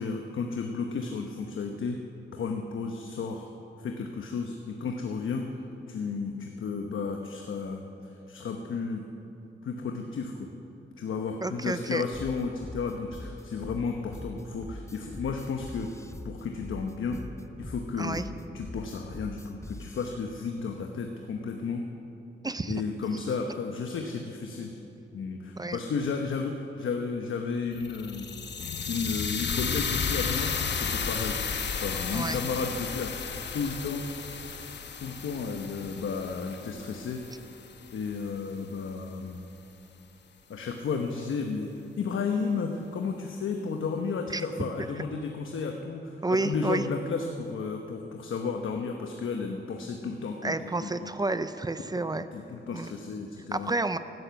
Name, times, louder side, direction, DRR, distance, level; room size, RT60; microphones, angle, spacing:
voice 1, 0.0-2.0 2.3-3.5 3.8-9.1 9.6-10.5 11.0-17.2 17.6-18.2 18.5-21.9 22.7-24.8 25.1-28.3 28.9-31.4 31.7-33.2 33.5-34.0 35.0-37.3 37.9-39.4 40.5-41.7 42.0-51.1 51.8-53.7, left 5 dB, 80° left, 3 dB, 1.1 m, -33 dB
voice 2, 11.4-12.0 18.0-18.2 22.4-22.8 25.6-25.8 32.1-32.4 44.3-44.5 46.2-46.9 50.4-52.3 52.7-52.9 53.5-54.0, right 2 dB, 20° right, 12 dB, 0.5 m, -30 dB
sound 1, 12.1-20.1, left 2 dB, 15° left, 0.7 m, -42 dB
sound 2, 27.8-37.9, left 6 dB, 60° left, 1.0 m, -33 dB
16.0 x 12.5 x 7.0 m, 2.9 s
wide cardioid pair, 130°, 20 cm